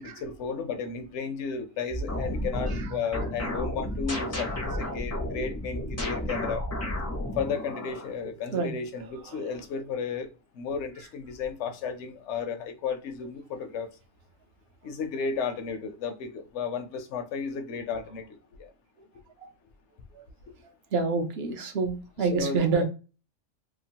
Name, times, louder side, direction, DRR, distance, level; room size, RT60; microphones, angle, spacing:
voice 1, 0.0-6.6 7.4-10.3 10.5-13.9 14.8-18.7 22.2-22.8, left 5 dB, 65° left, 7 dB, 0.9 m, -33 dB
sound 1, 1.9-8.1, left 1 dB, 20° left, 0.4 m, -32 dB
voice 2, 4.5-4.9 8.4-8.7 9.0-9.5 19.0-19.1 19.4-19.5 20.1-20.3 20.9-22.8, right 4 dB, 60° right, 5 dB, 0.8 m, -29 dB
2.9 x 2.2 x 2.8 m, 0.33 s
omnidirectional pair, 1.3 m